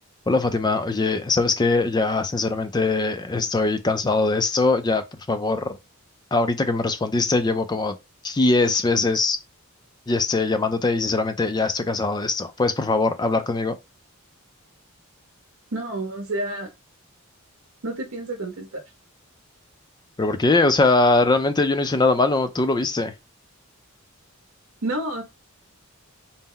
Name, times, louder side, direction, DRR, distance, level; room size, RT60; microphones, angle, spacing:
voice 1, 0.3-5.8 6.3-7.9 8.2-9.4 10.1-13.7 20.2-23.1, left 3 dB, 20° left, 0.4 m, -21 dB
voice 2, 15.7-16.7 17.8-18.8 24.8-25.2, right 1 dB, 70° right, 0.8 m, -29 dB
4.1 x 2.0 x 3.7 m
head